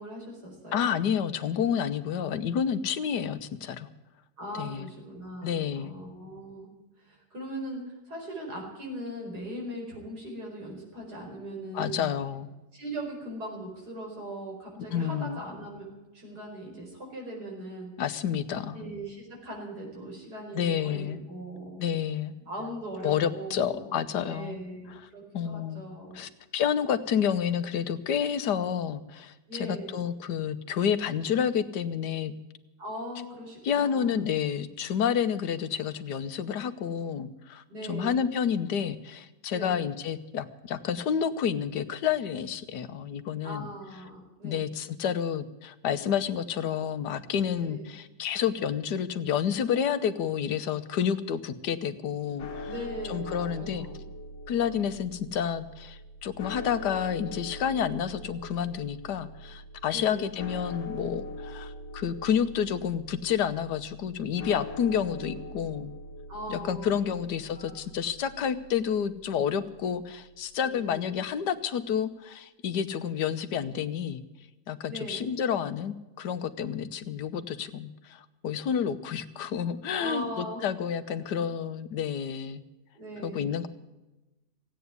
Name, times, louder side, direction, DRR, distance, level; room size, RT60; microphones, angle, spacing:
voice 1, 0.0-0.9 4.4-6.7 7.0-12.1 12.7-15.9 16.1-17.9 18.6-21.8 22.4-26.2 27.1-27.3 29.5-30.0 32.8-34.2 37.7-38.3 39.5-39.8 43.4-44.6 47.6-47.9 52.6-54.0 59.9-60.3 65.2-65.4 66.3-67.2 67.5-67.8 70.6-71.2 74.9-75.3 79.9-80.6 81.1-81.5 82.9-83.5, right 1 dB, 70° right, -1 dB, 5.3 m, -40 dB
voice 2, 0.7-3.9 4.5-4.9 5.4-5.9 11.7-12.5 14.9-15.4 18.0-18.8 20.5-21.2 21.8-22.3 23.0-24.6 25.3-25.8 26.1-32.3 33.6-43.7 44.4-52.7 53.1-53.9 54.5-65.9 66.5-74.2 74.7-82.6 83.2-83.7, left 8 dB, 85° left, 11 dB, 1.5 m, -29 dB
sound 1, 52.4-70.6, left 1 dB, 65° left, 1.9 m, -42 dB
16.5 x 9.2 x 9.5 m, 1.0 s
omnidirectional pair, 1.8 m